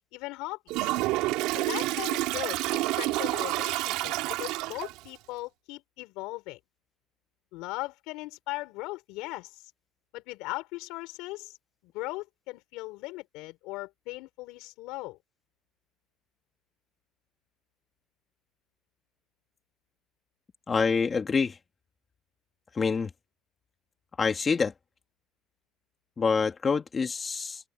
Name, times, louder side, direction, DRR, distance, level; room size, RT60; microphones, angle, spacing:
voice 1, 0.1-1.0 1.5-6.6 7.5-9.7 10.1-11.6 11.8-15.2, left 21 dB, 75° left, 5.4 m, -38 dB
Toilet flush, 0.7-5.1, right 19 dB, 75° right, 3.2 m, -29 dB
voice 2, 20.7-21.5 22.8-23.1 24.2-24.7 26.2-27.6, left 5 dB, 20° left, 2.3 m, -26 dB
cardioid pair, 165°, 0 cm